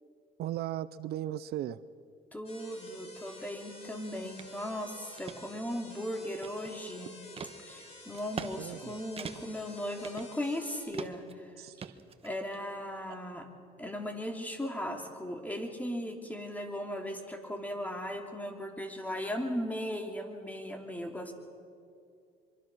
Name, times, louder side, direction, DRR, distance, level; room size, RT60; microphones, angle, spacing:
voice 1, 0.4-1.8 8.6-9.0 11.6-12.0, right 13 dB, 70° right, 16 dB, 0.6 m, -37 dB
voice 2, 2.3-7.2 7.6-11.5 12.2-13.5 13.8-21.3, equal, 10° left, 4 dB, 3.0 m, -37 dB
sound 1, 2.5-10.8, left 1 dB, 35° left, 6.7 m, -51 dB
sound 2, 4.4-4.5 5.0-5.4 5.9-6.9 7.4-7.5 8.1-8.5 8.8-8.9 9.2-9.6 10.0-10.6 10.9-11.3 11.8-12.6, right 6 dB, 35° right, 1.2 m, -42 dB
24.0 x 23.5 x 6.2 m, 2.5 s
cardioid pair, 110°, 17 cm